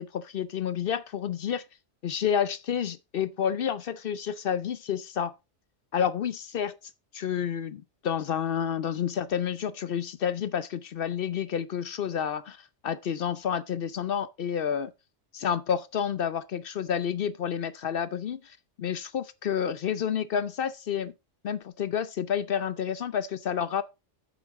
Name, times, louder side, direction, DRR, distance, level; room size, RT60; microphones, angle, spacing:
voice 1, 0.0-1.6 2.0-5.3 5.9-6.8 7.1-12.6 12.8-14.9 15.3-21.1 21.4-23.8, left 8 dB, 60° left, 0.7 m, -29 dB
8.3 x 7.4 x 3.6 m
omnidirectional pair, 1.2 m